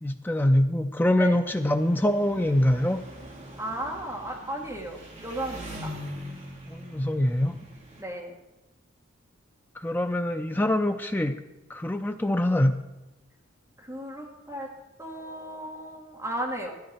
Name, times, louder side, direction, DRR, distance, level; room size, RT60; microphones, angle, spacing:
voice 1, 0.0-3.1 6.7-7.6 9.8-11.4 11.7-12.8, left 1 dB, 10° left, 7 dB, 0.5 m, -24 dB
Engine, 1.5-8.0, equal, 35° right, 1.5 m, -42 dB
voice 2, 3.6-5.9 8.0-8.3 13.8-14.7 15.0-16.7, right 1 dB, 15° right, -2 dB, 1.8 m, -35 dB
13.0 x 9.9 x 4.4 m, 1.0 s
head